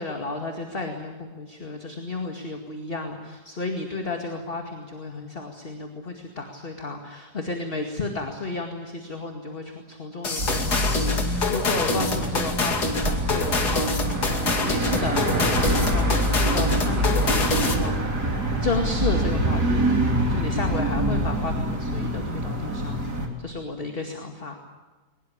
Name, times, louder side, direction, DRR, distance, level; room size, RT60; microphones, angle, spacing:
voice 1, 0.0-13.9 14.2-23.0 23.4-24.6, left 3 dB, 35° left, 3 dB, 2.3 m, -33 dB
sound 1, 10.2-17.9, left 3 dB, 70° left, 3.1 m, -26 dB
sound 2, 10.4-23.3, right 1 dB, 70° right, 4.0 m, -25 dB
22.5 x 21.0 x 8.6 m, 1.3 s
omnidirectional pair, 1.8 m